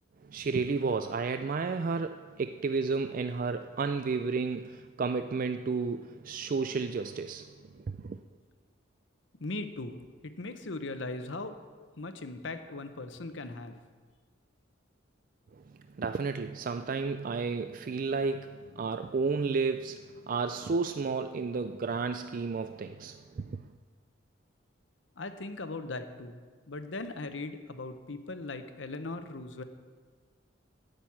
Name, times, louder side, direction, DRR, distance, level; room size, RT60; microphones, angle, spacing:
voice 1, 0.2-8.2 16.0-23.7, right 4 dB, 45° right, 0.3 m, -32 dB
voice 2, 9.4-10.0 10.2-11.6 11.9-13.7 25.2-26.4 26.7-29.6, left 2 dB, 65° left, 0.9 m, -39 dB
10.5 x 7.8 x 8.6 m
head